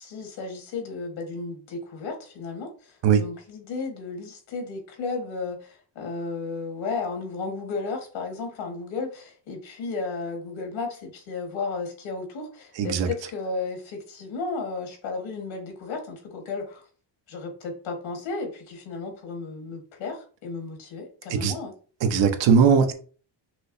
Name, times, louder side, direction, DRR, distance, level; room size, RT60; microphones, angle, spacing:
voice 1, 0.0-16.8 17.3-21.7, left 4 dB, 80° left, 1.6 m, -34 dB
voice 2, 12.8-13.1 21.3-21.5 22.0-22.9, right 6 dB, 70° right, 0.9 m, -19 dB
6.1 x 2.9 x 2.6 m
cardioid pair, 150°, 45 cm